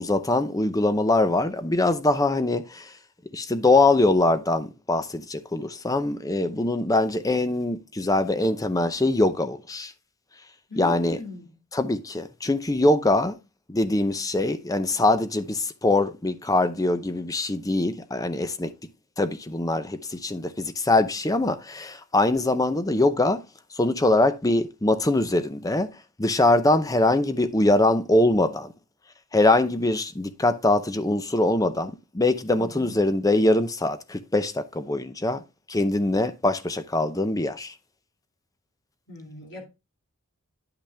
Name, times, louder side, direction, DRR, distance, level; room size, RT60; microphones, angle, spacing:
voice 1, 0.0-2.9 3.3-9.9 10.8-11.2 11.7-13.4 13.7-18.7 19.2-23.4 23.8-25.9 26.2-28.7 29.3-35.4 35.7-37.7, left 2 dB, 15° left, 0.6 m, -23 dB
voice 2, 10.7-11.6 32.6-33.0 39.1-39.7, left 1 dB, 60° left, 2.2 m, -39 dB
10.0 x 5.9 x 3.4 m
head